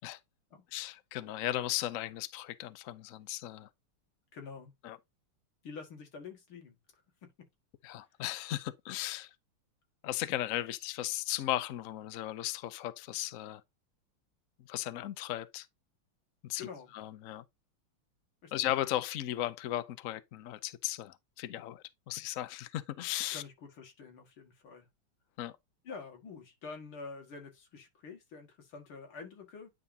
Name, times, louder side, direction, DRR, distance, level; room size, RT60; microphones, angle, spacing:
voice 1, 0.7-3.7 4.8-5.0 7.8-9.3 10.0-13.6 14.7-15.7 16.4-16.6 16.9-17.4 18.5-23.4 25.4-25.5, left 14 dB, 90° left, 0.7 m, -36 dB
voice 2, 4.3-4.7 5.6-6.8 7.2-7.3 16.6-16.9 18.4-18.5 23.3-24.9 25.8-29.7, left 5 dB, 70° left, 2.6 m, -47 dB
9.7 x 5.2 x 2.7 m
omnidirectional pair, 2.4 m